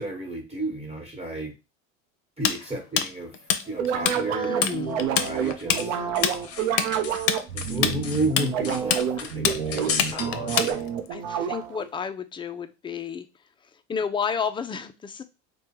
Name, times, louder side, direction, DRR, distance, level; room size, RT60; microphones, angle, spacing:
voice 1, 0.0-1.5 2.4-3.4 3.6-6.0 7.5-10.9, right 1 dB, 15° right, 1.4 m, -32 dB
Tools, 2.4-4.2 4.4-4.7 5.0-11.1, left 9 dB, 60° left, 0.6 m, -24 dB
sound 1, 3.8-11.9, right 8 dB, 85° right, 0.8 m, -28 dB
voice 2, 4.3-5.0 5.8-6.2 9.2-9.3 10.1-10.2 11.1-13.3 13.9-15.2, left 6 dB, 15° left, 0.3 m, -32 dB
sound 2, 4.8-7.3 7.6-10.7, left 6 dB, 40° left, 0.9 m, -36 dB
3.3 x 2.3 x 4.4 m
hypercardioid pair, 90°, 38 cm